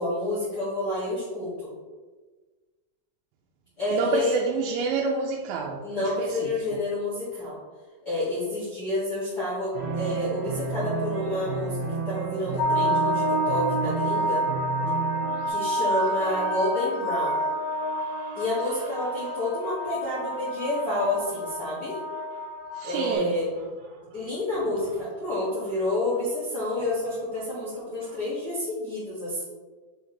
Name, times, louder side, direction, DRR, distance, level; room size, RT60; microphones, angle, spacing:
voice 1, 0.0-1.7 3.8-4.3 5.8-7.5 8.0-11.8 12.0-14.4 15.5-17.4 18.3-22.0 22.8-23.5 24.1-29.4, left 1 dB, 55° left, -10 dB, 1.0 m, -29 dB
voice 2, 3.9-6.5 15.9-16.8 17.1-18.4 19.0-19.3 22.4-22.5 22.7-23.4, right 4 dB, 85° right, 0 dB, 2.8 m, -31 dB
sound 1, 9.7-15.5, right 5 dB, 65° right, 2.9 m, -32 dB
sound 2, 12.6-23.1, equal, 90° left, 3.2 m, -28 dB
6.9 x 4.9 x 3.2 m, 1.3 s
omnidirectional pair, 5.3 m